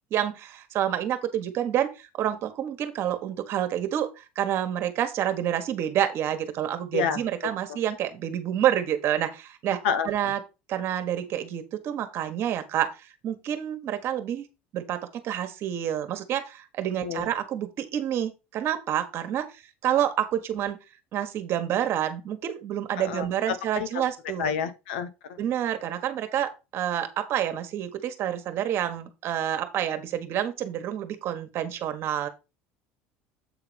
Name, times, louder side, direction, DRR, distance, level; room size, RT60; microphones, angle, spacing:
voice 1, 0.1-10.4 10.7-14.5 14.7-20.8 21.1-24.5 25.4-32.3, right 10 dB, 50° right, 1.4 m, -28 dB
voice 2, 23.7-24.1 24.4-25.4, left 7 dB, 90° left, 1.0 m, -29 dB
8.1 x 3.7 x 5.2 m
supercardioid pair, 110°, 5 cm